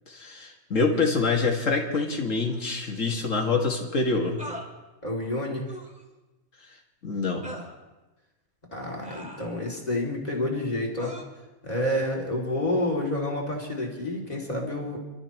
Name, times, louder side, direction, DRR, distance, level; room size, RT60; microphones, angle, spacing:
voice 1, 0.1-4.4 7.0-7.5, left 4 dB, 85° left, 0 dB, 2.3 m, -26 dB
sound 1, 2.5-2.6 4.4-4.7 5.7-6.0 7.4-7.7 9.0-9.8 11.0-11.2, equal, 5° right, 2.0 m, -40 dB
voice 2, 5.0-5.7 8.7-11.1 11.6-15.0, left 1 dB, 30° left, -1 dB, 2.8 m, -29 dB
29.5 x 12.5 x 3.1 m, 1.1 s
omnidirectional pair, 1.3 m